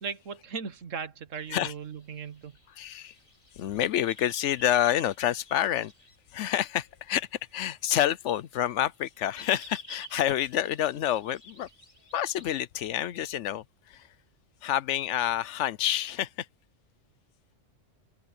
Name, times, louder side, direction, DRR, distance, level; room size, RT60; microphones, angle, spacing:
voice 1, 0.0-2.6, right 6 dB, 80° right, 1.6 m, -37 dB
sound 1, 1.3-6.2 6.7-7.8 8.3-12.6, left 1 dB, 45° left, 5.3 m, -50 dB
voice 2, 2.8-3.1 3.6-5.9 6.3-11.7 12.1-14.1 14.6-16.5, left 11 dB, 70° left, 0.9 m, -28 dB
open air
omnidirectional pair, 1.3 m